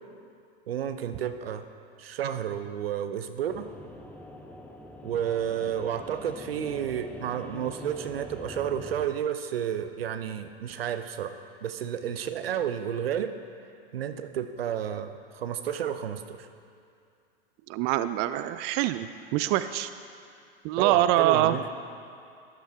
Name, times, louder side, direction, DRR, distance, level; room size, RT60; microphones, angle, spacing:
voice 1, 0.7-1.6 2.0-3.7 5.0-11.4 11.6-13.3 13.9-16.5 20.8-21.7, right 9 dB, 80° right, 10 dB, 0.8 m, -31 dB
sound 1, 3.5-9.1, left 1 dB, 5° left, 0.8 m, -44 dB
voice 2, 17.7-19.9 20.6-21.6, right 14 dB, 35° right, 13 dB, 0.4 m, -25 dB
13.5 x 11.5 x 3.6 m, 2.5 s
hypercardioid pair, 105°, 29 cm